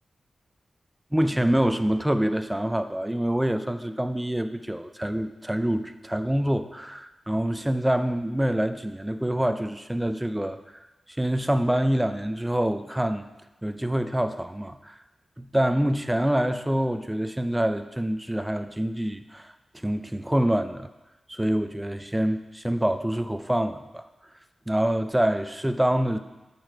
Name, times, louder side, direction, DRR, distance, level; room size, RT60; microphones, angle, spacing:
voice 1, 1.1-10.6 11.1-13.3 13.6-14.9 15.4-20.9 21.3-24.0 24.7-26.2, right 1 dB, 10° right, 9 dB, 0.5 m, -26 dB
8.8 x 6.8 x 4.6 m, 1.1 s
wide cardioid pair, 90°, 0 cm